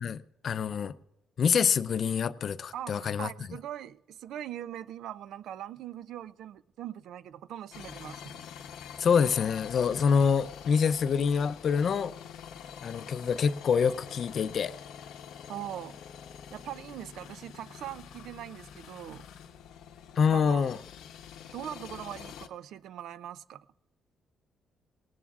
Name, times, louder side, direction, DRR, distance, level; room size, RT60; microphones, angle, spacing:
voice 1, 0.0-0.9 1.4-3.3 9.0-12.1 12.8-14.7 20.2-20.8, left 6 dB, 55° left, 0.5 m, -26 dB
voice 2, 2.7-8.5 15.5-16.0 16.5-19.3 20.3-20.7 21.5-23.7, right 11 dB, 80° right, 0.4 m, -41 dB
sound 1, 7.7-22.5, left 8 dB, 90° left, 0.8 m, -46 dB
19.5 x 18.5 x 2.4 m
cardioid pair, 90°, 0 cm